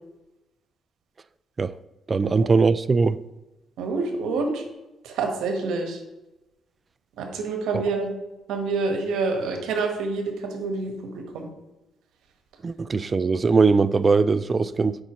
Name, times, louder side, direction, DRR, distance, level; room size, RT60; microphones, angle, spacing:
voice 1, 2.1-3.2 12.6-15.0, right 4 dB, 35° right, 0.3 m, -20 dB
voice 2, 3.8-4.6 5.0-6.0 7.2-8.1 8.5-11.5, right 4 dB, 85° right, 1.3 m, -27 dB
7.9 x 5.5 x 3.0 m
cardioid pair, 90°, 0 cm